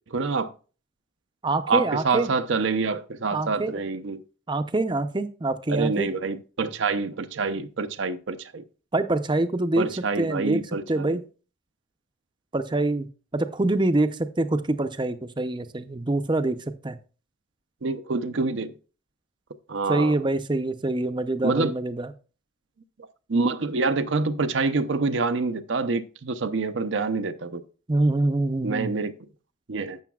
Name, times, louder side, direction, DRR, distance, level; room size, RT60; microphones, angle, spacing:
voice 1, 0.1-0.5 1.7-4.2 5.7-8.6 9.8-11.2 17.8-18.7 19.7-20.2 21.4-21.7 23.3-27.6 28.6-29.1 29.7-30.0, right 4 dB, 60° right, 0.6 m, -26 dB
voice 2, 1.4-2.3 3.3-3.8 4.5-6.1 8.9-9.9 10.2-10.6 10.9-11.2 12.5-13.1 13.3-16.6 16.8-17.0 19.9-22.1 27.9-29.0, right 2 dB, 25° right, 0.6 m, -25 dB
12.0 x 8.0 x 2.3 m
head